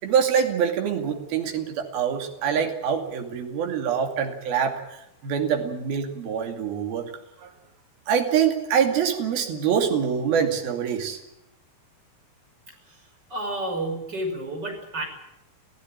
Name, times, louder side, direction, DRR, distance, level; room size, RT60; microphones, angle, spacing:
voice 1, 0.0-4.7 5.2-7.0 8.1-11.2, right 7 dB, 75° right, 4 dB, 4.4 m, -24 dB
voice 2, 13.3-15.0, right 1 dB, 25° right, 3 dB, 6.4 m, -30 dB
26.0 x 16.0 x 8.8 m, 0.85 s
omnidirectional pair, 4.4 m